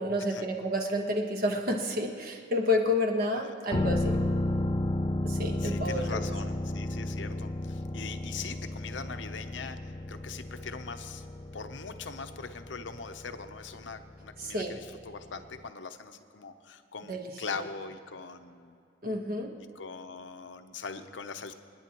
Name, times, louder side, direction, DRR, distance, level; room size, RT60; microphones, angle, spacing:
voice 1, 0.0-4.2 5.2-6.2 14.4-14.8 17.1-17.3 19.0-19.5, left 1 dB, 55° right, 2 dB, 1.3 m, -30 dB
sound 1, 3.7-15.3 15.6-15.7, left 1 dB, 25° left, 0.4 m, -33 dB
voice 2, 5.6-11.2 11.5-18.8 19.7-21.5, left 5 dB, 80° left, 8 dB, 0.8 m, -41 dB
27.5 x 9.9 x 3.0 m, 2.5 s
head